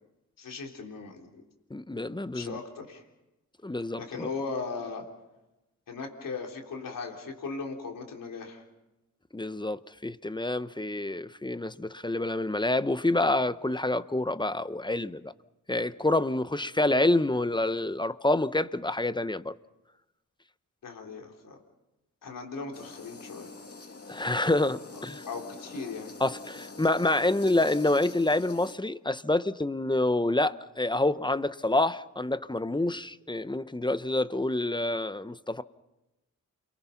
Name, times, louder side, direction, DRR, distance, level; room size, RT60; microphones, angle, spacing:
voice 1, 0.4-1.4 2.3-3.0 4.0-5.1 5.9-8.6 20.8-21.6 22.2-23.5 24.9-25.0 25.3-26.1, left 4 dB, 85° left, 3.7 m, -38 dB
voice 2, 1.7-2.6 3.6-4.3 9.3-15.3 15.7-19.5 24.1-25.2 26.2-35.6, left 2 dB, 15° left, 0.8 m, -27 dB
sound 1, 22.7-28.7, left 3 dB, 45° left, 2.4 m, -45 dB
29.0 x 23.0 x 5.9 m
cardioid pair, 55°, 32 cm